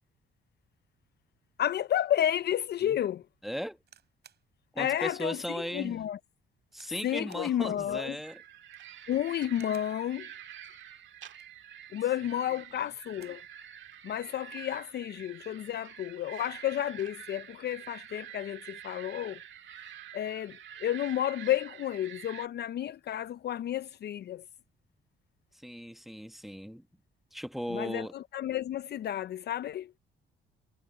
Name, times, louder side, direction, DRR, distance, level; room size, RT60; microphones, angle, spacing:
voice 1, 1.6-3.2 4.8-6.2 7.0-8.2 9.1-10.3 11.9-13.4 14.0-19.4 20.1-24.4 27.7-29.9, left 11 dB, 55° left, 0.5 m, -31 dB
voice 2, 3.4-3.8 4.7-6.0 6.7-8.4 25.5-26.9 27.3-28.1, equal, ahead, 1.4 m, -37 dB
sound 1, 3.8-4.5 5.0-5.1 5.6-5.8 6.7-7.0 7.3-7.5 8.6-9.0 9.5-10.0 11.2-11.6 12.8-13.5 13.9-14.0 14.2-14.7 15.5-15.8, right 8 dB, 55° right, 6.5 m, -60 dB
sound 2, 8.2-22.5, right 10 dB, 70° right, 1.7 m, -47 dB
cardioid pair, 90°, 20 cm